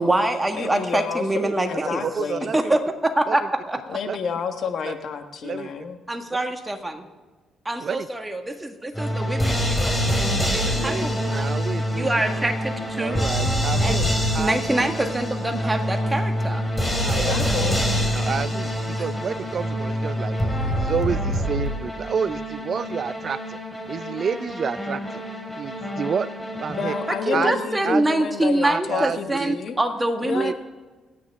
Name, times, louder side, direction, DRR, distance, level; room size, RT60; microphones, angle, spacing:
voice 1, 0.0-2.0 2.5-3.8 6.1-7.0 7.6-11.5 11.9-13.2 13.8-14.1 14.4-16.6 17.4-17.5 27.2-30.5, right 1 dB, 15° right, 4 dB, 1.7 m, -25 dB
voice 2, 0.5-2.5 3.9-6.0 10.7-11.2 17.1-17.8 26.7-29.8 30.2-30.5, left 6 dB, 65° left, 7 dB, 1.4 m, -30 dB
voice 3, 2.0-2.7 3.3-3.4 4.1-4.2 4.8-4.9 5.4-5.7 7.8-8.1 10.8-12.1 13.0-14.1 14.3-14.9 15.6-15.8 17.0-17.3 18.1-20.5 20.8-23.6 23.9-25.2 25.6-26.3 26.6-26.9 27.3-27.6 27.8-28.1 28.6-29.5 30.3-30.5, right 6 dB, 50° right, 15 dB, 0.4 m, -29 dB
sound 1, 9.0-27.4, equal, 15° left, 2.5 m, -26 dB
28.0 x 9.4 x 3.6 m, 1.3 s
cardioid pair, 90°, 0 cm